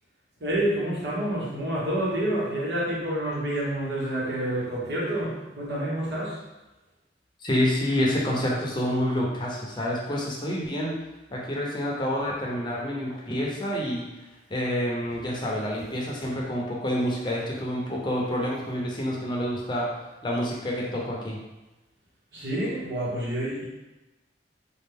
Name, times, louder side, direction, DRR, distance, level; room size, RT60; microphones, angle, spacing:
voice 1, 0.4-6.4 22.3-23.6, right 1 dB, 75° right, -6 dB, 1.4 m, -28 dB
voice 2, 7.4-11.0 11.3-14.1 14.5-19.9 20.2-21.4, equal, 25° left, -3 dB, 0.7 m, -28 dB
4.3 x 2.5 x 3.4 m, 1.0 s
head